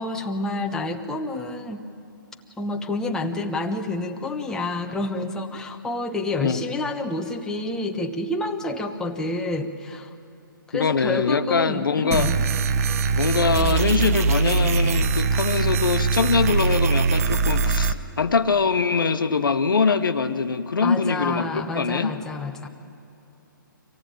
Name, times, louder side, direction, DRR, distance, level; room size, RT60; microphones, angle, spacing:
voice 1, 0.0-1.8 2.6-10.1 10.7-12.4 20.8-22.7, left 2 dB, 5° left, 2 dB, 1.0 m, -28 dB
voice 2, 10.7-12.3 13.2-22.1, left 5 dB, 75° left, 9 dB, 1.3 m, -23 dB
sound 1, 12.1-17.9, right 4 dB, 45° right, 0.9 m, -22 dB
24.5 x 17.0 x 9.0 m, 2.8 s
hypercardioid pair, 140°, 11 cm